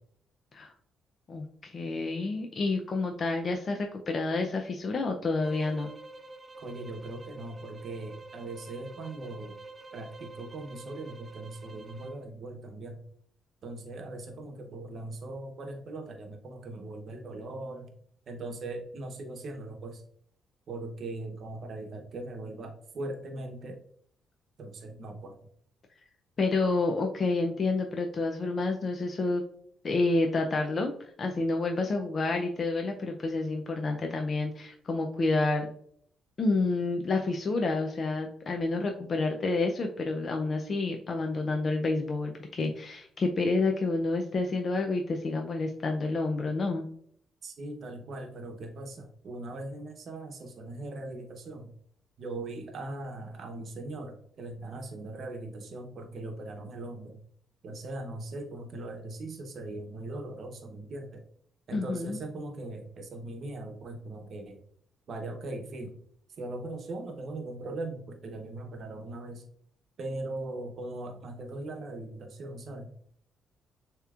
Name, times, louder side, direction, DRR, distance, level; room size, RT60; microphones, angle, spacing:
voice 1, 1.3-5.9 26.4-29.4 29.8-35.7 36.4-46.9 61.7-62.2, left 3 dB, 45° left, 3 dB, 0.5 m, -29 dB
sound 1, 5.4-12.2, right 2 dB, 30° right, 0.5 m, -48 dB
voice 2, 6.6-9.5 9.9-13.0 13.6-17.9 18.3-20.0 20.7-23.8 24.6-25.4 47.4-51.7 52.2-57.2 57.6-61.2 61.7-64.6 65.1-66.0 66.4-69.4 70.0-72.9, right 2 dB, 60° right, 5 dB, 0.8 m, -40 dB
6.7 x 2.9 x 2.4 m, 0.63 s
cardioid pair, 90°, 0 cm